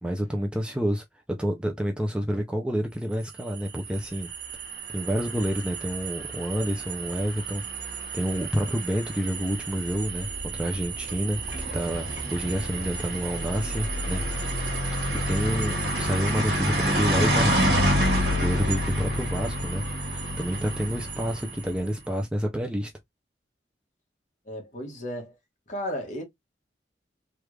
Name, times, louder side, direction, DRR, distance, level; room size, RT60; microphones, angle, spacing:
voice 1, 0.0-4.3 4.9-11.4 11.7-14.5 15.1-17.9 18.3-22.9, equal, 5° right, 0.4 m, -29 dB
sound 1, 3.4-21.9, right 1 dB, 70° right, 1.3 m, -29 dB
voice 2, 24.4-25.4 25.7-26.2, equal, 45° left, 1.3 m, -34 dB
3.3 x 2.4 x 3.2 m
head